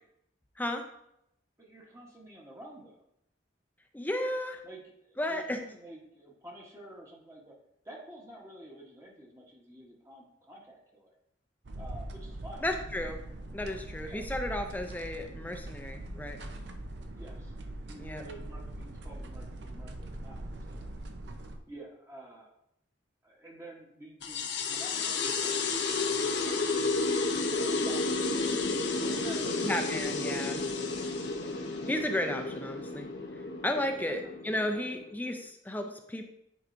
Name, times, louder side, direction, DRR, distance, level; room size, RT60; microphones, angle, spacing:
voice 1, 0.6-0.9 3.9-4.6 5.2-5.6 12.6-13.2 13.5-16.4 18.0-18.2 29.6-30.6 31.9-33.1 33.6-34.2 34.4-36.2, left 1 dB, 10° left, 5 dB, 0.4 m, -33 dB
voice 2, 1.6-3.0 4.6-7.6 7.8-11.1 11.8-12.8 14.1-14.2 17.2-17.5 17.8-20.9 21.7-22.5 23.2-26.8 27.5-30.2 31.3-32.1 34.0-34.4 34.7-34.9, right 1 dB, 15° right, -1 dB, 1.0 m, -49 dB
sound 1, 11.6-21.6, right 1 dB, 65° right, 0.6 m, -42 dB
sound 2, 24.2-35.2, left 3 dB, 65° left, 0.7 m, -31 dB
9.5 x 4.6 x 2.6 m, 0.78 s
head